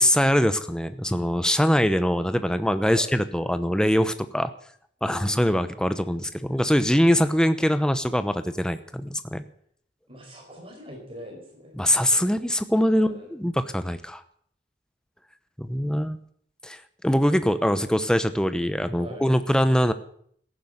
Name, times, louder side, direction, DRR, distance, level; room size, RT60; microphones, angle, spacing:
voice 1, 0.0-4.5 5.0-9.4 11.8-14.2 15.6-16.2 16.6-19.9, equal, 5° left, 11 dB, 0.8 m, -23 dB
voice 2, 2.8-3.2 5.0-5.7 7.0-7.4 10.1-11.8 12.1-12.5 12.9-13.3 18.9-19.3, equal, 30° right, 2 dB, 5.0 m, -43 dB
15.0 x 11.5 x 7.9 m, 0.64 s
head